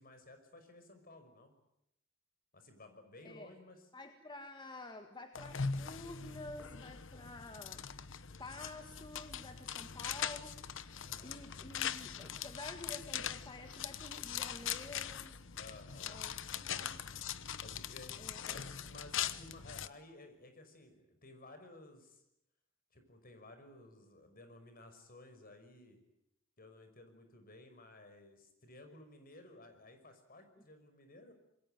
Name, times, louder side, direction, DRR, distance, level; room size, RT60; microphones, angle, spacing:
voice 1, 0.0-1.5 2.5-3.9 10.9-11.4 15.5-16.2 16.5-16.9 17.6-18.1 18.5-22.2 22.9-26.0 26.6-31.3, left 2 dB, 45° left, 7 dB, 5.6 m, -56 dB
voice 2, 3.9-15.4 16.0-16.3 16.6-17.0 18.1-18.6, left 2 dB, 20° left, 6 dB, 1.7 m, -50 dB
sound 1, 5.4-19.9, left 8 dB, 65° left, 1.1 m, -41 dB
27.0 x 22.0 x 9.2 m, 0.81 s
head